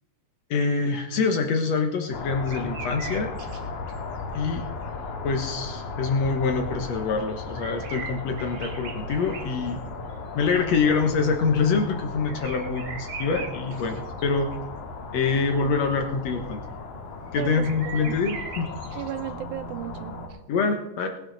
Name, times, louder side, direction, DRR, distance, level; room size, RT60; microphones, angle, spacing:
voice 1, 0.5-3.3 4.3-4.7 5.2-9.8 10.4-14.5 15.1-16.6 17.3-18.7 20.5-21.1, left 4 dB, 65° left, 4 dB, 2.0 m, -25 dB
sound 1, 0.9-1.0 2.5-3.6 3.9-4.0 4.3-4.4 4.8-4.9 7.1-9.7 10.1-10.2 12.3-14.6 16.4-16.6 17.3-19.3, right 5 dB, 55° right, 2.2 m, -40 dB
sound 2, 2.1-20.3, left 3 dB, 80° left, 3.4 m, -36 dB
voice 2, 17.4-18.1 19.0-20.4, right 10 dB, 75° right, 10 dB, 2.0 m, -35 dB
20.0 x 11.0 x 3.9 m, 0.95 s
omnidirectional pair, 3.8 m